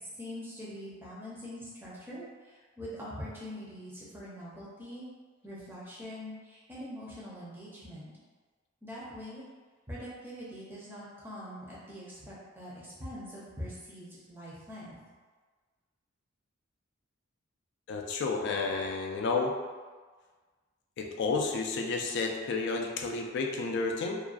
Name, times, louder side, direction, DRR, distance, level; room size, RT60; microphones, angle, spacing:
voice 1, 0.0-5.1 5.4-8.1 8.8-9.4 9.9-15.0, equal, 10° right, -8 dB, 0.6 m, -43 dB
voice 2, 17.9-19.5 21.0-24.2, left 4 dB, 55° left, 1 dB, 0.3 m, -31 dB
2.4 x 2.2 x 2.4 m, 1.4 s
head